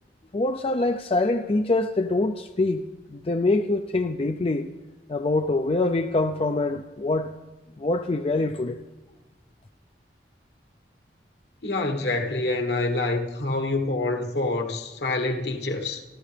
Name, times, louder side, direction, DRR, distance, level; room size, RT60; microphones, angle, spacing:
voice 1, 0.3-2.8 3.1-4.7 5.1-7.3 7.8-8.8, left 2 dB, 35° left, 0.5 m, -24 dB
voice 2, 11.6-16.0, left 2 dB, 65° left, 1.4 m, -26 dB
29.0 x 12.5 x 3.4 m
head